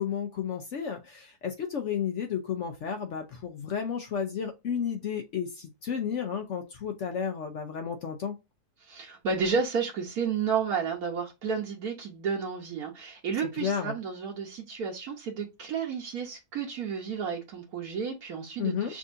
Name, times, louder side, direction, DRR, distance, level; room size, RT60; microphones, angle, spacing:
voice 1, 0.0-8.4 13.6-14.0 18.6-18.9, left 7 dB, 60° left, 0.8 m, -32 dB
voice 2, 8.8-19.0, right 6 dB, 75° right, 1.4 m, -32 dB
6.1 x 2.6 x 2.5 m
omnidirectional pair, 1.6 m